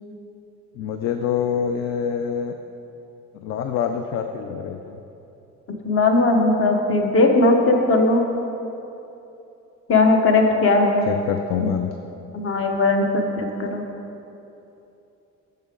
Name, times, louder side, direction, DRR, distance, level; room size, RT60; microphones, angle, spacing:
voice 1, 0.8-2.5 3.3-5.0 11.0-11.9, left 7 dB, 60° left, 6 dB, 0.4 m, -26 dB
voice 2, 5.8-8.2 9.9-11.1 12.3-13.8, left 2 dB, 45° left, 3 dB, 0.9 m, -18 dB
6.9 x 6.6 x 3.7 m, 2.9 s
cardioid pair, 90°, 30 cm